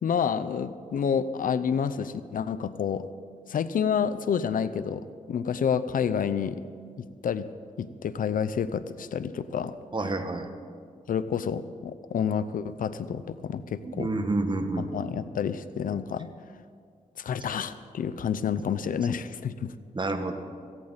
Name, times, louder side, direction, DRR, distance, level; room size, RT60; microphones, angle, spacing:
voice 1, 0.0-3.1 3.5-6.6 7.0-7.5 7.8-9.7 11.1-14.1 14.8-16.3 17.2-19.7, left 7 dB, 75° left, 13 dB, 0.6 m, -29 dB
voice 2, 9.9-10.5 13.7-15.1 19.9-20.3, right 2 dB, 35° right, 7 dB, 1.5 m, -29 dB
17.0 x 16.0 x 4.1 m, 2.1 s
cardioid pair, 75°, 14 cm